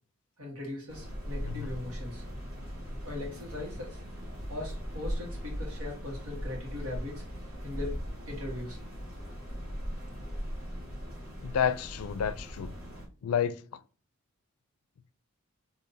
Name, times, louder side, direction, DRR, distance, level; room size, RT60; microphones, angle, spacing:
voice 1, 0.4-2.2 3.0-4.0 4.5-7.2 7.6-8.0 8.3-8.8, left 2 dB, 85° right, 1.5 m, -39 dB
sound 1, 0.9-13.1, equal, 45° right, 1.9 m, -39 dB
voice 2, 11.4-12.7 13.2-13.6, left 8 dB, 90° left, 0.4 m, -29 dB
4.0 x 2.8 x 2.7 m
head